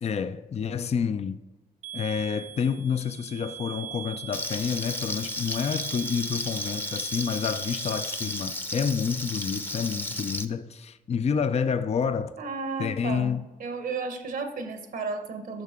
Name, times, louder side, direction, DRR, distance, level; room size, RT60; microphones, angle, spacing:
voice 1, 0.0-1.4 1.9-12.3 12.8-13.4, left 6 dB, 45° left, 0.5 m, -29 dB
sound 1, 1.8-8.4, right 10 dB, 55° right, 0.5 m, -42 dB
Frying (food), 4.3-10.4, left 1 dB, 15° left, 0.7 m, -33 dB
voice 2, 12.4-13.3 13.6-15.6, right 4 dB, 80° right, 1.1 m, -33 dB
9.5 x 6.5 x 3.7 m
cardioid pair, 70°, 15 cm